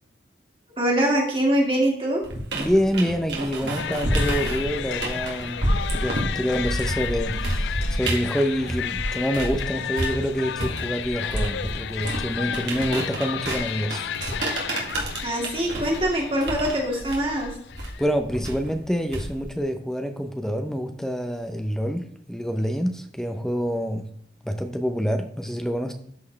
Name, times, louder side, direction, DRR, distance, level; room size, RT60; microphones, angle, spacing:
voice 1, 0.8-2.2 15.2-17.5, right 1 dB, 30° right, -2 dB, 2.2 m, -23 dB
sound 1, 2.2-9.6 10.0-19.6, right 1 dB, 80° right, 2.0 m, -29 dB
voice 2, 2.5-5.7 5.9-14.1 18.0-24.1 24.4-25.9, equal, 5° left, 5 dB, 0.6 m, -27 dB
sound 2, 3.6-4.1 4.4-5.1 5.4-5.5 5.9-6.1 6.5-7.0 7.3-8.0 8.3-8.4, left 1 dB, 60° left, 2.7 m, -43 dB
sound 3, 3.8-18.1, left 9 dB, 80° left, 0.4 m, -33 dB
13.0 x 4.4 x 3.2 m, 0.66 s
head